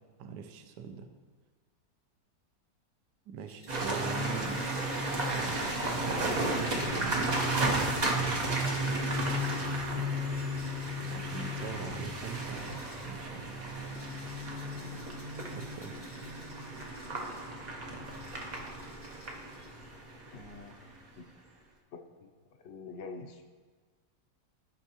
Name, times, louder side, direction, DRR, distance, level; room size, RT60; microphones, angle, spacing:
voice 1, 0.2-1.1 3.3-4.6 5.2-5.8 6.1-7.3 10.0-10.3 11.1-13.5 15.5-16.0, right 7 dB, 70° right, 7 dB, 1.2 m, -42 dB
sound 1, 3.4-13.1 13.7-17.6 18.0-19.9, left 1 dB, 40° left, 2.8 m, -55 dB
sound 2, 3.7-20.8, right 1 dB, 45° right, 0.5 m, -33 dB
voice 2, 8.4-8.9 19.2-19.3 20.3-20.8 21.1-21.3 22.2-23.4, left 4 dB, 85° left, 4 dB, 0.6 m, -46 dB
13.5 x 5.5 x 2.9 m, 1.5 s
omnidirectional pair, 2.0 m